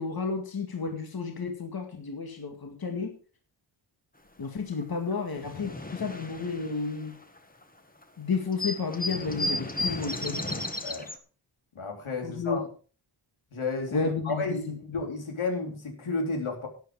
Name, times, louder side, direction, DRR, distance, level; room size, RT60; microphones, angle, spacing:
voice 1, 0.0-3.1 4.4-7.2 8.2-10.7 12.2-12.7 13.9-14.7, left 4 dB, 50° left, 4 dB, 2.1 m, -32 dB
sound 1, 4.8-4.9 5.1-7.6 8.0-8.1 8.3-11.2, left 1 dB, 20° left, 1.7 m, -34 dB
voice 2, 11.8-12.6 13.5-16.7, left 3 dB, 85° left, 2 dB, 3.6 m, -32 dB
13.0 x 9.6 x 4.8 m, 0.39 s
wide cardioid pair, 100°, 48 cm